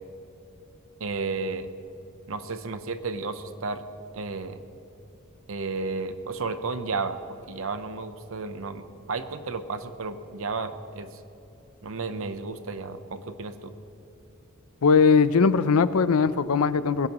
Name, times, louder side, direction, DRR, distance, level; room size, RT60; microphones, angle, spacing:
voice 1, 1.0-1.7 2.3-3.8 4.1-4.6 5.5-7.2 7.5-11.1 11.8-13.7, right 4 dB, 70° right, 10 dB, 0.8 m, -32 dB
voice 2, 14.8-17.1, left 5 dB, 80° left, 15 dB, 0.5 m, -20 dB
20.5 x 16.5 x 3.0 m, 2.8 s
head